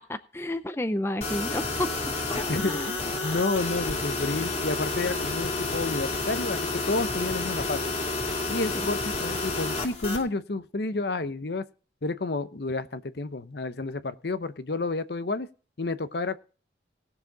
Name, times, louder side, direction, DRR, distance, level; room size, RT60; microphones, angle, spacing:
voice 1, 0.0-1.9 2.3-2.9 8.7-8.9, left 1 dB, 15° left, 10 dB, 0.5 m, -31 dB
sound 1, 1.2-10.2, left 3 dB, 35° left, 2.3 m, -30 dB
voice 2, 2.5-7.9 8.5-11.6 12.0-15.5 15.8-16.4, left 3 dB, 60° left, 12 dB, 0.8 m, -30 dB
19.0 x 6.9 x 3.9 m, 0.39 s
head